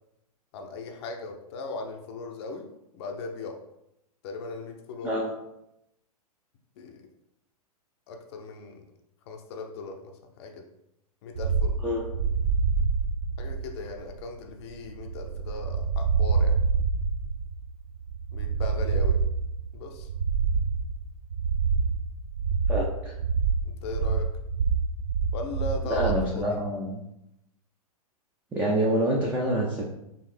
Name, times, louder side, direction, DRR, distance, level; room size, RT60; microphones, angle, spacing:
voice 1, 0.5-2.7 2.9-3.6 4.2-5.1 6.8-7.0 8.1-8.8 9.3-10.1 10.4-10.6 11.2-11.8 13.4-16.5 18.3-19.2 19.7-20.1 23.6-24.3 25.3-26.6, left 3 dB, 45° left, 3 dB, 0.6 m, -38 dB
sound 1, 11.4-26.3, right 5 dB, 70° right, 0.6 m, -27 dB
voice 2, 22.7-23.1 25.9-27.0 28.5-29.8, right 1 dB, 10° right, -3 dB, 0.5 m, -26 dB
4.6 x 2.6 x 3.3 m, 0.83 s
figure-of-eight pair, 105°, 20 cm